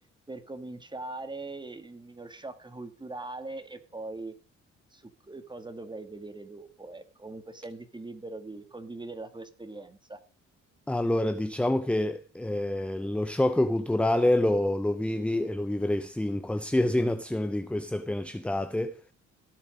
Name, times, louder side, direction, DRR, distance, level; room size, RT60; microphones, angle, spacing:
voice 1, 0.3-4.3 4.9-10.2, right 2 dB, 15° right, 2.0 m, -41 dB
voice 2, 10.9-19.0, left 1 dB, 5° left, 0.6 m, -27 dB
16.5 x 7.3 x 5.2 m
cardioid pair, 90°, 30 cm